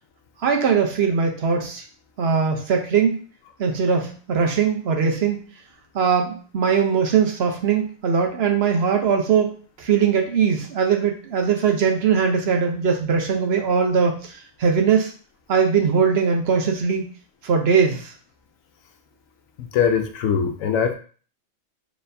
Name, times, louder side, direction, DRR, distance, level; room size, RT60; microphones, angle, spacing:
voice 1, 0.4-1.8 2.2-3.2 3.6-5.4 5.9-15.1 15.5-17.1 17.4-18.1, right 6 dB, 55° right, 3 dB, 0.9 m, -20 dB
voice 2, 19.6-20.9, left 7 dB, 80° left, 6 dB, 1.0 m, -22 dB
4.2 x 3.3 x 2.6 m, 0.40 s
omnidirectional pair, 1.4 m